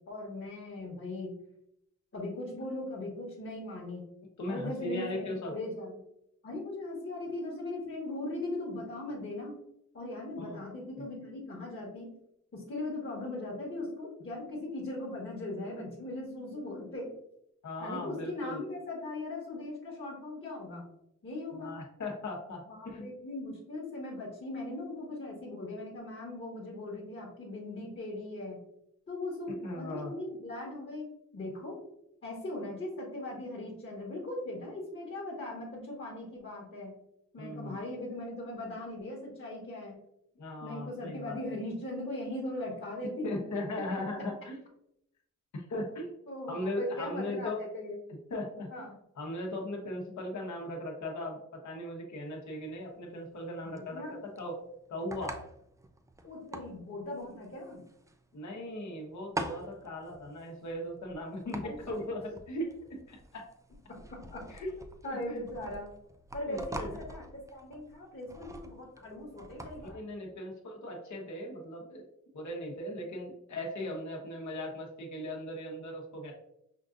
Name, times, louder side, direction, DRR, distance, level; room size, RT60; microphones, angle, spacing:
voice 1, 0.1-1.4 2.1-4.1 4.5-6.0 6.4-9.6 9.9-12.1 12.5-17.1 17.8-20.8 21.2-21.7 22.7-28.6 29.1-31.8 32.2-36.9 37.3-40.0 40.6-43.4 43.8-43.9 46.3-48.0 48.7-49.0 53.7-54.2 56.2-57.8 61.6-61.8 64.1-64.5 65.0-65.9 66.3-67.2 67.5-70.0, left 2 dB, 40° left, -4 dB, 1.2 m, -39 dB
voice 2, 4.4-5.5 10.4-10.6 11.0-11.1 17.6-18.6 21.5-23.1 29.6-30.1 37.4-37.8 40.4-41.4 43.2-44.6 45.5-46.2 46.5-47.6 48.3-48.7 49.2-54.6 54.9-55.4 58.3-63.4 64.5-64.7 65.0-65.4 66.5-66.9 69.8-72.0 72.3-76.3, left 1 dB, 70° left, 0 dB, 1.1 m, -38 dB
sound 1, 52.2-70.0, right 1 dB, 10° right, 0.3 m, -45 dB
5.7 x 2.5 x 2.5 m, 0.77 s
wide cardioid pair, 95°, 30 cm